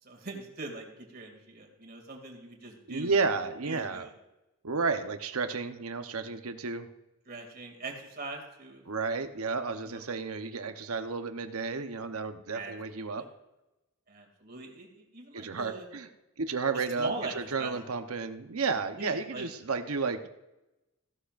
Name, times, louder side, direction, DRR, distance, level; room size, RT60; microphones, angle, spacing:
voice 1, 0.0-3.1 3.7-4.1 7.3-8.8 9.8-10.0 12.5-13.3 14.1-15.9 16.7-17.7 19.0-19.4, right 3 dB, 45° right, 1 dB, 2.4 m, -41 dB
voice 2, 2.9-4.1 4.6-6.9 8.9-13.3 15.3-16.1 16.4-20.3, right 4 dB, 85° right, 8 dB, 0.9 m, -32 dB
16.0 x 11.5 x 2.5 m, 0.96 s
head